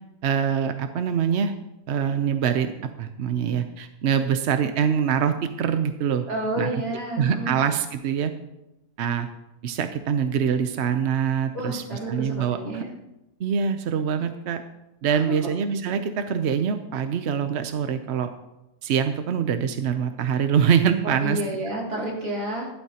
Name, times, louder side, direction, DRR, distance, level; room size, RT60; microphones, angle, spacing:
voice 1, 0.2-1.5 1.9-6.2 6.6-6.8 7.2-8.3 9.0-9.3 9.6-12.8 13.4-14.6 15.0-18.3 18.8-21.4, right 7 dB, 60° right, 8 dB, 0.7 m, -24 dB
voice 2, 6.3-7.6 11.5-12.9 15.1-15.4 21.0-22.7, right 1 dB, 80° right, -4 dB, 4.0 m, -30 dB
15.5 x 11.5 x 2.9 m, 0.92 s
omnidirectional pair, 1.7 m